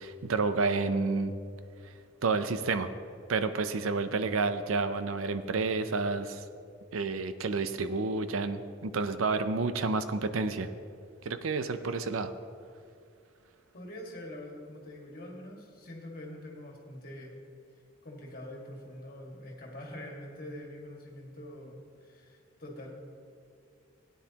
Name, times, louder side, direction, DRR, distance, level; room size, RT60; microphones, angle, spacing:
voice 1, 0.0-1.3 2.2-2.9 3.3-6.4 6.9-10.7 11.2-12.3, right 4 dB, 90° right, 11 dB, 0.6 m, -30 dB
voice 2, 13.7-17.3 17.7-22.9, left 1 dB, 45° left, -1 dB, 1.9 m, -45 dB
17.0 x 9.5 x 2.9 m, 2.4 s
head